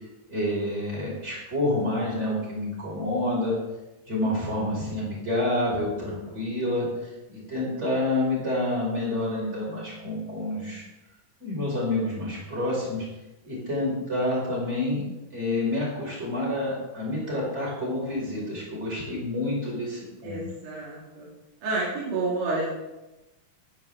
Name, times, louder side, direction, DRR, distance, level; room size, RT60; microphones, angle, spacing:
voice 1, 0.3-3.6 4.1-10.8 11.4-13.1 13.4-15.0 15.3-20.4, left 1 dB, 20° right, -5 dB, 5.2 m, -28 dB
voice 2, 20.2-21.3 21.6-22.7, right 3 dB, 80° right, -6 dB, 4.1 m, -30 dB
14.5 x 10.5 x 3.7 m, 1.0 s
omnidirectional pair, 3.5 m